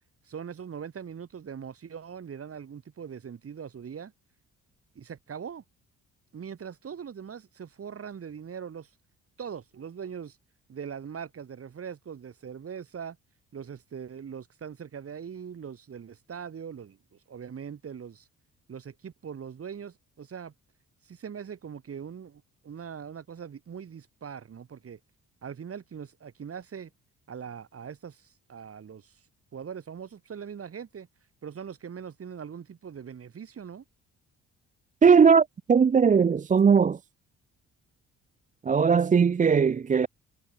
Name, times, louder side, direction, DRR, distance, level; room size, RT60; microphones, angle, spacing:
voice 1, 0.2-4.1 4.9-5.6 6.3-8.9 9.4-10.4 10.7-13.2 13.5-17.0 17.3-18.3 18.7-20.5 21.0-25.0 25.4-26.9 27.3-29.2 29.5-31.1 31.4-33.8, right 7 dB, 50° right, 6.8 m, -41 dB
voice 2, 35.0-37.0 38.7-40.1, right 6 dB, 25° right, 0.5 m, -19 dB
cardioid pair, 90°, 30 cm